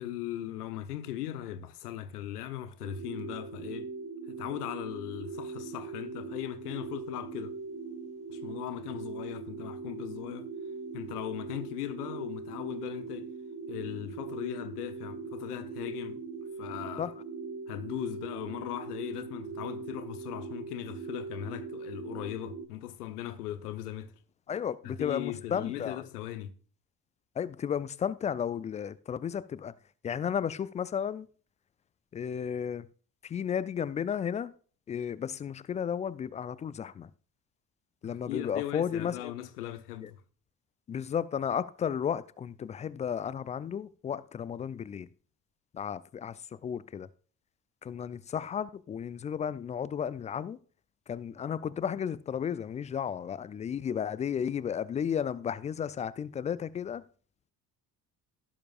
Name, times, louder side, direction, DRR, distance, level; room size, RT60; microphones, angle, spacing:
voice 1, 0.0-3.9 4.3-7.5 8.3-10.5 10.9-13.3 13.7-16.2 16.6-17.1 17.7-24.1 24.8-26.5 38.0-40.2, left 12 dB, 70° left, 1.0 m, -39 dB
sound 1, 2.8-22.7, right 4 dB, 30° right, 1.2 m, -41 dB
voice 2, 24.5-26.0 27.4-29.7 30.0-31.3 32.1-32.9 33.2-34.5 34.9-37.1 38.0-39.3 40.0-40.1 40.9-45.1 45.7-47.1 47.8-50.6 51.1-57.0, left 8 dB, 15° left, 0.3 m, -33 dB
16.5 x 7.3 x 2.4 m
figure-of-eight pair, 45°, 47 cm